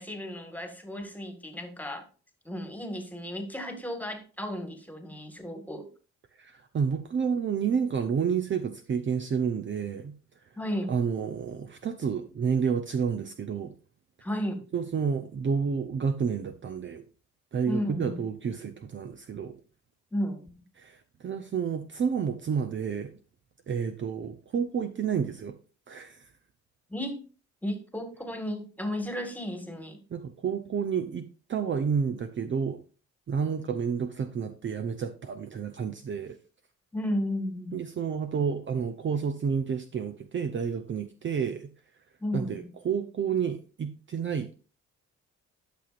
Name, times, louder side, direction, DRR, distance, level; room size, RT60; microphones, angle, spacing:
voice 1, 0.0-2.1 2.5-5.9 10.6-10.9 14.2-14.6 17.7-18.2 20.1-20.5 26.9-27.3 27.6-30.0 36.9-37.8 42.2-42.7, equal, 5° left, 5 dB, 1.7 m, -34 dB
voice 2, 6.4-10.1 10.9-13.7 14.7-17.0 17.5-19.6 20.8-23.1 23.7-25.6 25.9-26.3 30.1-32.8 33.3-36.4 37.7-41.7 42.3-44.5, right 6 dB, 40° right, 8 dB, 0.7 m, -30 dB
11.5 x 6.0 x 2.5 m, 0.35 s
cardioid pair, 90°, 30 cm